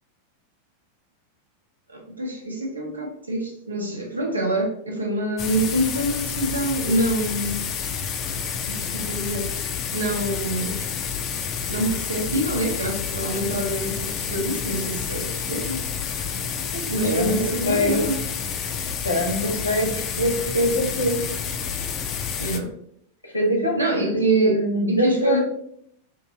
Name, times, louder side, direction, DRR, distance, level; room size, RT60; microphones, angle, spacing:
voice 1, 1.9-7.6 8.7-9.5 9.9-10.8 11.6-15.8 16.5-18.2 22.4-22.7 23.8-25.4, right 1 dB, 80° right, 0.8 m, -26 dB
sound 1, 5.4-22.6, left 7 dB, 30° left, 0.4 m, -29 dB
voice 2, 16.7-17.4 17.6-18.1 19.0-21.2 23.2-25.4, equal, 85° left, 1.0 m, -24 dB
3.7 x 2.7 x 2.7 m
figure-of-eight pair, 90°, 0 cm